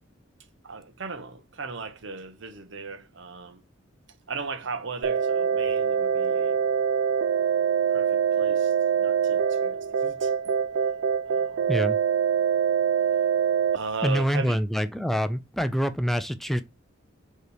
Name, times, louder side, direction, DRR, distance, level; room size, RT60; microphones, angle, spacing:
voice 1, 0.6-3.6 4.3-6.6 7.9-8.7 9.0-10.3 11.3-11.6 13.7-14.6, right 4 dB, 65° right, 0.8 m, -37 dB
sound 1, 5.0-13.8, right 7 dB, 85° right, 0.3 m, -24 dB
voice 2, 14.0-16.6, equal, ahead, 0.3 m, -26 dB
4.7 x 3.0 x 3.3 m
head